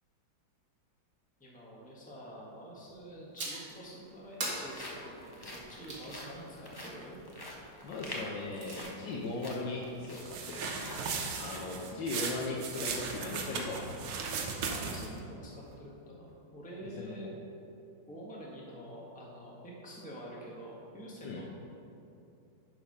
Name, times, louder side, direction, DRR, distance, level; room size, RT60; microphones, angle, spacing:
voice 1, 1.4-7.2 14.7-17.3 18.1-19.5 19.8-21.5, equal, 5° left, -4 dB, 1.3 m, -47 dB
sound 1, 2.9-3.0 3.9-14.5 14.9-15.0 15.5-15.7, left 1 dB, 30° left, 0.4 m, -48 dB
sound 2, 3.4-3.8 4.4-6.1 8.2-8.8, right 2 dB, 50° right, 2.0 m, -40 dB
voice 2, 7.8-10.2 10.5-10.8 11.4-13.9 16.8-17.3 21.2-21.4, left 2 dB, 70° left, -3 dB, 1.5 m, -38 dB
sound 3, 10.2-15.2, right 5 dB, 85° right, 1.7 m, -37 dB
11.0 x 4.8 x 5.4 m, 2.7 s
omnidirectional pair, 2.2 m